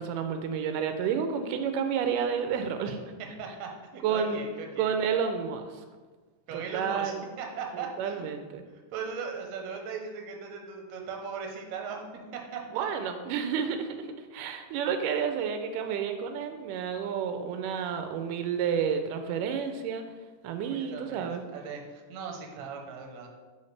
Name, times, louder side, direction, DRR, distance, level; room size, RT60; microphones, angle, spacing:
voice 1, 0.0-3.0 4.0-4.4 4.8-5.7 6.5-7.2 7.7-8.6 12.7-14.1 14.3-20.0 20.4-21.4, right 7 dB, 90° right, 7 dB, 2.1 m, -30 dB
voice 2, 3.4-4.9 6.5-7.1 7.4-8.2 8.9-12.0 12.3-12.9 20.6-23.3, right 5 dB, 70° right, 1 dB, 2.0 m, -38 dB
8.4 x 4.5 x 3.2 m, 1.4 s
omnidirectional pair, 3.6 m